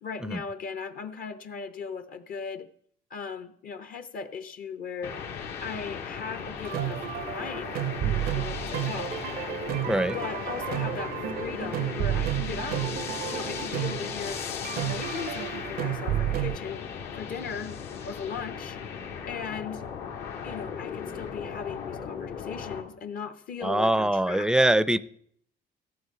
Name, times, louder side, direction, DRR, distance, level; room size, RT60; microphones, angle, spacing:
voice 1, 0.0-2.7 3.1-5.1 5.6-7.7 8.0-9.1 9.9-14.4 14.7-17.8 18.0-18.8 19.3-19.8 20.4-24.5, left 6 dB, 55° left, 10 dB, 0.9 m, -38 dB
sound 1, 5.0-22.8, left 7 dB, 80° left, 1.7 m, -37 dB
sound 2, 6.5-16.6, right 13 dB, 60° right, 0.5 m, -31 dB
voice 2, 23.6-25.0, right 1 dB, 5° right, 17 dB, 0.4 m, -23 dB
14.5 x 7.6 x 5.7 m, 0.65 s
cardioid pair, 110°, 17 cm